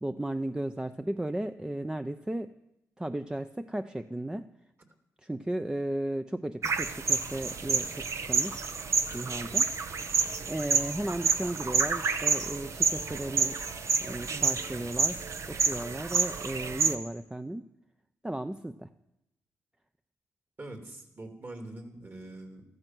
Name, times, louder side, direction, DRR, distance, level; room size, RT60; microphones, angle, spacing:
voice 1, 0.0-2.5 3.0-4.5 5.2-8.7 9.1-9.7 10.5-13.6 14.0-15.2 15.5-17.7 18.2-18.9, right 1 dB, 10° right, 9 dB, 0.7 m, -35 dB
sound 1, 6.6-16.9, right 4 dB, 55° right, 1.1 m, -29 dB
voice 2, 20.6-22.6, right 2 dB, 35° right, 5 dB, 3.2 m, -43 dB
14.0 x 14.0 x 6.2 m, 0.85 s
cardioid pair, 70°, 6 cm